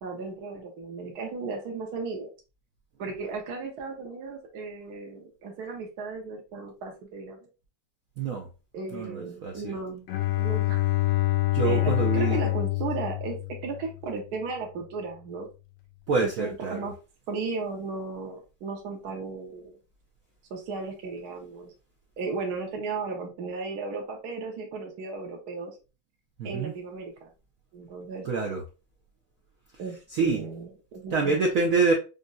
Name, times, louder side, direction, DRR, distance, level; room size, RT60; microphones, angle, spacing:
voice 1, 0.0-2.3 3.0-7.4 8.7-10.1 10.4-10.8 11.6-13.4 13.6-15.5 16.2-16.9 17.3-19.7 20.5-21.7 22.2-25.8 26.4-27.3 27.7-28.3 29.8-31.4, right 4 dB, 60° right, 2 dB, 1.2 m, -35 dB
voice 2, 8.2-8.5 8.9-9.7 11.5-12.4 16.1-16.9 26.4-26.7 28.2-28.6 30.1-30.4 31.1-31.9, right 4 dB, 80° right, 1 dB, 0.7 m, -26 dB
Bowed string instrument, 10.1-14.0, left 18 dB, 75° left, 1.0 m, -26 dB
5.1 x 2.6 x 2.2 m, 0.31 s
omnidirectional pair, 2.2 m